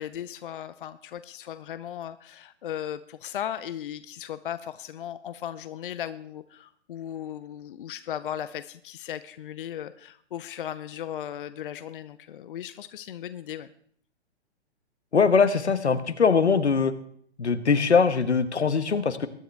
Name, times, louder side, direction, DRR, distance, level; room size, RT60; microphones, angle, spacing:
voice 1, 0.0-13.7, left 10 dB, 50° left, 13 dB, 0.6 m, -37 dB
voice 2, 15.1-16.9 17.4-19.3, left 5 dB, 75° left, 11 dB, 1.2 m, -21 dB
21.5 x 10.0 x 3.3 m, 0.63 s
figure-of-eight pair, 120°, 33 cm